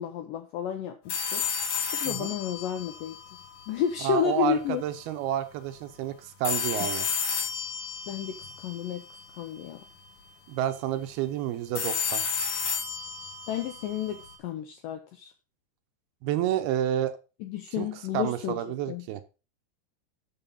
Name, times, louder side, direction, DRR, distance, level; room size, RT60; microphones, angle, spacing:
voice 1, 0.0-1.5 1.9-3.2 3.7-4.8 6.8-6.9 8.1-9.0 9.3-9.8 13.5-15.3 17.4-18.6 18.9-19.0, left 9 dB, 80° left, 6 dB, 2.0 m, -31 dB
sound 1, 1.1-4.1 6.4-9.6 11.8-14.4, left 6 dB, 55° left, 3.2 m, -32 dB
voice 2, 4.0-7.1 10.5-12.2 16.2-17.2 17.8-17.9 18.1-19.2, right 11 dB, 75° right, 10 dB, 2.5 m, -29 dB
7.0 x 6.8 x 5.4 m, 0.32 s
omnidirectional pair, 4.9 m